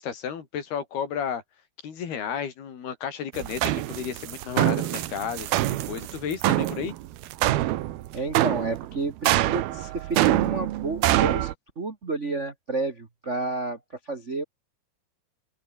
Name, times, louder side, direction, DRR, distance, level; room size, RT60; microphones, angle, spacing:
voice 1, 0.0-1.4 1.8-6.9, left 7 dB, 85° left, 5.4 m, -32 dB
sound 1, 3.4-11.5, right 15 dB, 85° right, 3.0 m, -25 dB
voice 2, 8.1-13.8 14.0-14.4, right 3 dB, 45° right, 0.9 m, -31 dB
open air
omnidirectional pair, 4.4 m